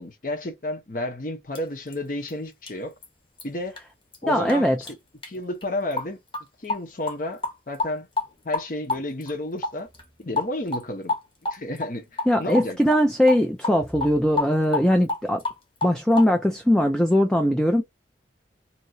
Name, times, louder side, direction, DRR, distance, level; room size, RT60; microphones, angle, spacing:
voice 1, 0.0-2.9 3.4-3.8 4.2-4.9 5.3-6.2 6.6-8.1 8.4-9.9 10.2-11.1 11.5-12.8, left 1 dB, 50° left, 1.0 m, -31 dB
sound 1, 1.6-1.7 1.9-2.0 2.3-2.4 2.7-2.8 3.0-3.1 3.4-3.5 3.8-3.9 4.1-4.2 4.5-4.6 4.9-5.0 5.2-5.3 5.6-5.7 5.9-6.1 6.3-6.4 6.7-6.8 7.1-7.2 7.4-7.9 8.2-8.3 8.5-8.6 8.9-9.3 9.6-10.1 10.4-10.8 11.1-11.9 12.2-12.7 12.9-13.0 13.3-13.4 13.6-15.6 15.8-16.3, left 3 dB, 30° left, 1.1 m, -28 dB
voice 2, 4.3-4.8 12.3-15.4 15.8-17.8, equal, 5° left, 0.4 m, -20 dB
2.9 x 2.8 x 2.7 m
head